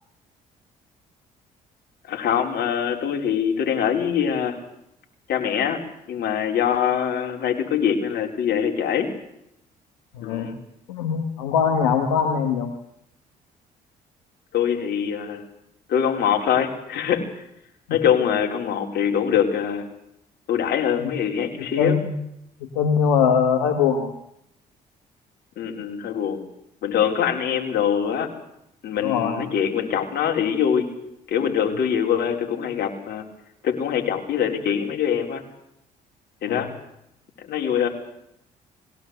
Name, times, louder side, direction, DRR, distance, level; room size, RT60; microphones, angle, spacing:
voice 1, 2.1-4.6 5.3-5.8 6.1-9.1 10.2-10.6 14.5-15.4 15.9-17.4 17.9-19.9 20.5-22.0 25.6-26.4 26.8-28.3 28.8-30.9 31.3-33.2 33.6-35.4 36.4-36.7 37.4-37.9, left 8 dB, 65° left, 2 dB, 4.4 m, -23 dB
voice 2, 10.1-10.5 10.9-12.7 17.9-18.0 21.0-21.1 21.6-22.2 22.8-24.1 29.0-29.4 36.5-36.7, left 6 dB, 90° left, 3 dB, 1.9 m, -22 dB
21.0 x 17.0 x 8.2 m, 0.79 s
hypercardioid pair, 55°, 18 cm